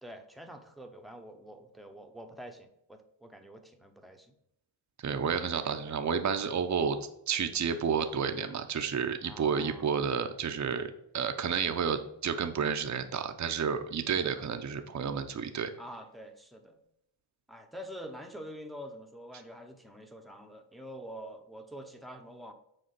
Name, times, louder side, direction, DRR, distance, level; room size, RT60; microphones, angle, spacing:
voice 1, 0.0-4.3 9.2-9.9 15.8-16.8 17.5-22.5, equal, ahead, 4 dB, 0.9 m, -46 dB
voice 2, 5.0-7.0 7.3-15.7, right 6 dB, 40° right, 8 dB, 0.8 m, -31 dB
6.7 x 4.3 x 5.9 m, 0.81 s
cardioid pair, 95°, 46 cm